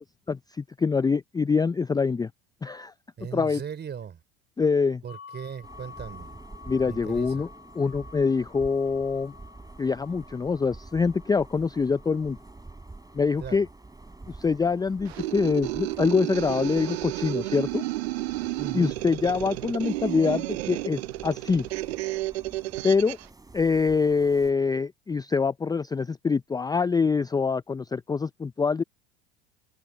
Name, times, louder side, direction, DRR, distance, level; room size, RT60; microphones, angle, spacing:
voice 1, 0.3-2.3 2.6-2.9 3.3-3.6 4.6-5.0 6.7-7.5 7.7-9.3 9.8-12.4 13.1-13.7 14.3-17.8 18.7-21.7 22.8-23.2 23.5-28.8, left 5 dB, 10° left, 0.5 m, -25 dB
voice 2, 3.2-4.2 5.0-6.4 6.8-7.5 13.4-13.7 18.6-18.9, right 7 dB, 35° right, 4.4 m, -38 dB
sound 1, 5.1-16.8, left 6 dB, 40° left, 2.0 m, -52 dB
sound 2, 5.6-24.5, right 2 dB, 10° right, 3.2 m, -48 dB
sound 3, 15.1-23.3, right 18 dB, 80° right, 0.7 m, -32 dB
hypercardioid pair, 80°, 32 cm